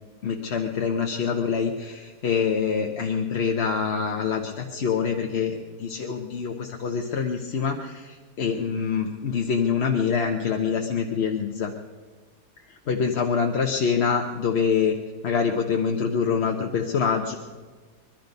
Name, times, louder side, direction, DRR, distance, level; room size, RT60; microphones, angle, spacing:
voice 1, 0.2-11.7 12.7-15.0 15.2-17.4, left 6 dB, 50° left, 3 dB, 1.0 m, -25 dB
22.5 x 12.0 x 5.3 m, 1.4 s
omnidirectional pair, 1.7 m